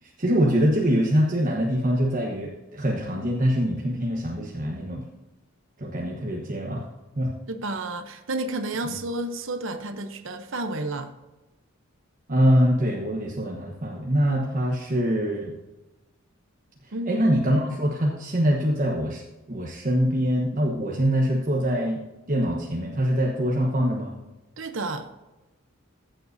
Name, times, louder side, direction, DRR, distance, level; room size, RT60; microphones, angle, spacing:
voice 1, 0.0-5.0 5.8-6.9 7.1-7.3 8.8-9.0 12.3-15.5 17.1-19.2 19.5-24.1, equal, 40° right, -1 dB, 1.1 m, -24 dB
voice 2, 7.5-11.1 16.9-17.3 24.6-25.1, right 2 dB, 60° right, 7 dB, 0.8 m, -31 dB
15.0 x 7.7 x 2.7 m, 1.1 s
head